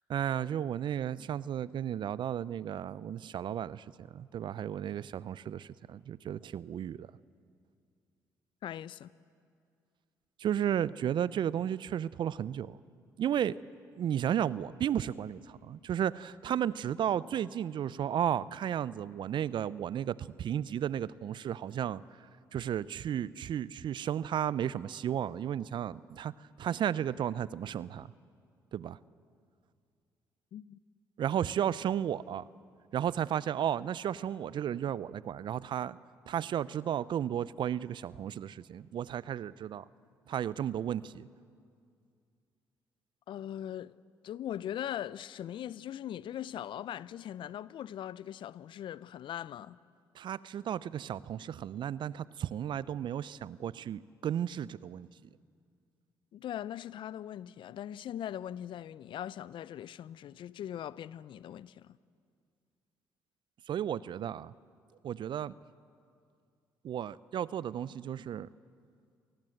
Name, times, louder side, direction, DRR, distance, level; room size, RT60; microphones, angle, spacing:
voice 1, 0.1-7.1 10.4-12.8 13.2-13.6 14.0-26.3 26.6-28.1 28.7-29.0 31.2-32.4 32.9-36.0 36.3-39.8 40.3-41.3 50.1-55.1 63.7-64.5 65.0-65.5 66.8-68.5, right 10 dB, 55° right, 0.6 m, -33 dB
voice 2, 8.6-9.1 30.5-30.8 43.3-44.0 44.2-49.8 56.3-62.0, left 11 dB, 60° left, 0.6 m, -40 dB
26.0 x 19.5 x 7.9 m
hypercardioid pair, 50°, 9 cm